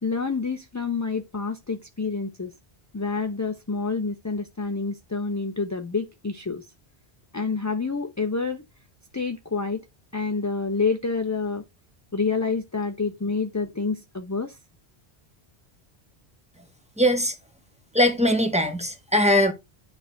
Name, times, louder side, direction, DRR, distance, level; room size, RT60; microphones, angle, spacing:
voice 1, 0.0-2.5 2.9-6.7 7.3-8.6 9.1-9.8 10.1-11.6 12.1-14.6, left 4 dB, 20° left, 0.6 m, -28 dB
voice 2, 17.0-17.3 17.9-19.5, equal, 5° right, 1.2 m, -20 dB
10.0 x 3.5 x 4.4 m
omnidirectional pair, 1.1 m